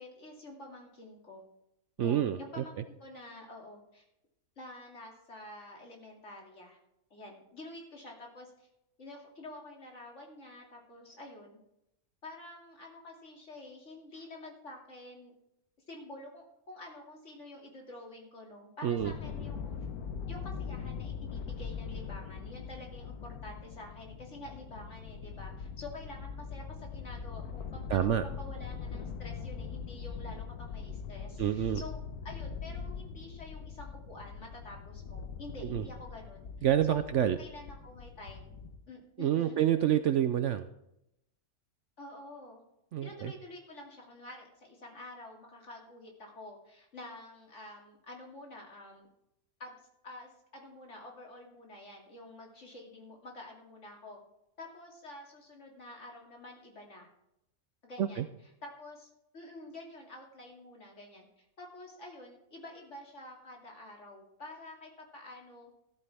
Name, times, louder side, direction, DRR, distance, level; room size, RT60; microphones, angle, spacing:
voice 1, 0.0-1.4 2.0-4.0 4.6-6.8 7.1-8.7 9.0-11.6 12.2-15.3 15.9-19.9 20.3-36.5 36.8-38.5 38.9-39.6 42.0-42.6 43.0-49.1 49.6-54.2 54.6-57.1 57.8-65.7, left 2 dB, 50° left, 0 dB, 2.7 m, -48 dB
voice 2, 2.0-2.6 18.8-19.1 27.9-28.2 31.4-31.8 35.7-35.8 36.6-37.4 39.2-40.7 42.9-43.3 58.0-58.2, right 10 dB, 65° right, 10 dB, 0.8 m, -28 dB
sound 1, 19.0-38.8, left 6 dB, 85° left, 1.4 m, -42 dB
13.5 x 13.0 x 3.4 m, 0.83 s
omnidirectional pair, 1.6 m